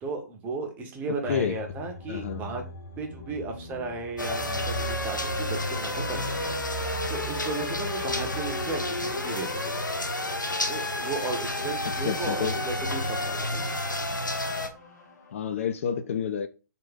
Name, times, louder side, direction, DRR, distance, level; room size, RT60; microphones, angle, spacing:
voice 1, 0.0-2.6 3.0-6.8 7.1-9.7 10.7-13.7, right 3 dB, 15° right, 0.7 m, -35 dB
voice 2, 1.1-1.6 2.1-2.4 11.8-12.6 15.3-16.5, left 8 dB, 45° left, 0.4 m, -30 dB
sound 1, 1.2-15.3, right 4 dB, 65° left, 1.6 m, -42 dB
sound 2, 4.2-14.7, left 2 dB, 85° left, 0.7 m, -30 dB
3.5 x 2.6 x 4.0 m
figure-of-eight pair, 125°, 10 cm